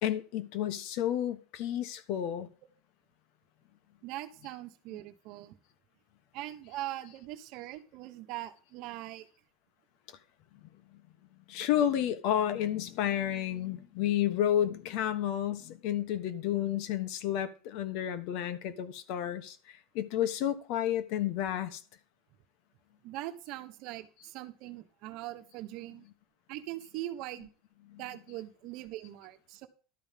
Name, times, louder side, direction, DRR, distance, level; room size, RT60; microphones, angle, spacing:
voice 1, 0.0-2.5 11.5-21.8 27.9-28.0, left 11 dB, 60° left, 1.3 m, -31 dB
voice 2, 4.0-5.6 6.3-9.3 23.0-26.0 26.5-27.5 28.0-29.7, right 15 dB, 55° right, 1.2 m, -41 dB
12.0 x 5.0 x 7.4 m
supercardioid pair, 150°, 0 cm